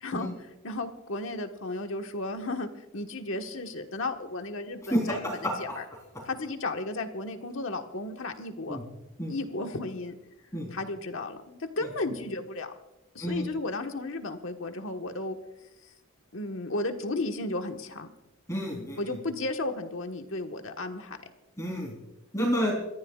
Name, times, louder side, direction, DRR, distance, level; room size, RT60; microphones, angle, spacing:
voice 1, 0.0-0.3 0.6-5.8 6.2-8.8 9.3-10.1 10.7-12.7 13.1-15.3 16.3-18.1 19.0-21.2, left 2 dB, 60° left, 5 dB, 1.4 m, -34 dB
voice 2, 4.9-5.5 8.7-8.8 9.2-9.3 10.5-10.7 13.2-13.5 18.5-19.0 21.6-21.9 22.3-22.8, equal, 15° left, -2 dB, 3.7 m, -29 dB
28.0 x 14.5 x 2.4 m, 0.95 s
head